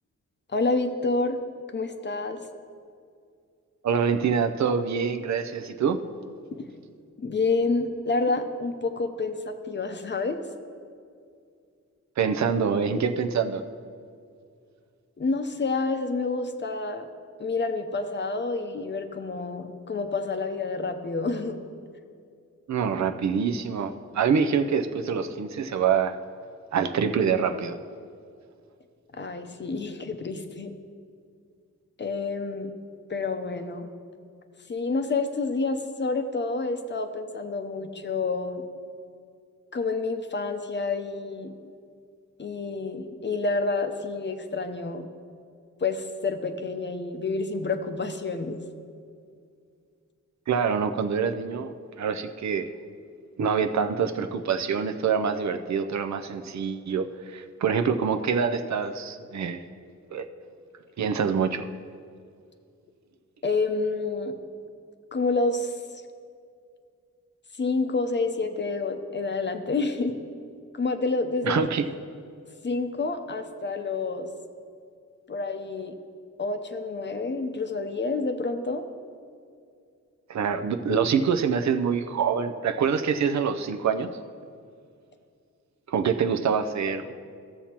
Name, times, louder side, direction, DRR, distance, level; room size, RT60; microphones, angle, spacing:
voice 1, 0.5-1.4 1.7-2.4 6.5-6.7 7.2-10.4 15.2-17.1 17.4-21.6 29.2-30.7 32.0-32.8 33.1-33.9 34.7-38.6 39.7-41.5 42.4-45.0 45.8-48.6 63.4-64.3 65.1-65.7 67.6-70.1 70.7-71.7 72.6-74.3 75.3-75.9 76.4-78.9, left 3 dB, 35° left, 7 dB, 0.7 m, -28 dB
voice 2, 3.8-6.0 12.2-13.6 22.7-26.1 26.7-27.8 50.5-52.7 53.4-59.6 60.1-60.2 61.0-61.6 71.4-71.8 80.3-84.1 85.9-87.1, right 6 dB, 65° right, 8 dB, 0.5 m, -25 dB
14.5 x 7.2 x 2.9 m, 2.3 s
wide cardioid pair, 95°, 30 cm